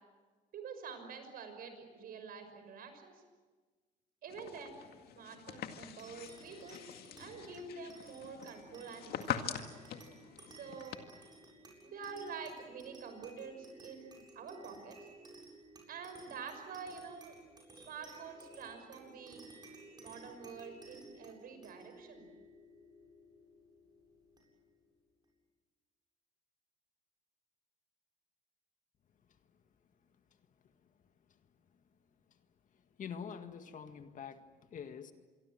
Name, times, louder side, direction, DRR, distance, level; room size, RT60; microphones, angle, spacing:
voice 1, 0.5-3.2 4.2-4.8 5.1-6.8 7.2-9.6 10.5-11.0 11.8-15.0 15.9-17.3 17.8-19.4 20.0-22.2, right 5 dB, 60° right, 7 dB, 6.0 m, -47 dB
sound 1, 4.3-11.0, left 9 dB, 70° left, 2.1 m, -44 dB
sound 2, 6.0-24.8, right 2 dB, 25° right, 8.0 m, -56 dB
voice 2, 33.0-35.1, left 7 dB, 50° left, 8 dB, 1.9 m, -46 dB
26.5 x 23.0 x 7.7 m, 1.4 s
cardioid pair, 110°, 17 cm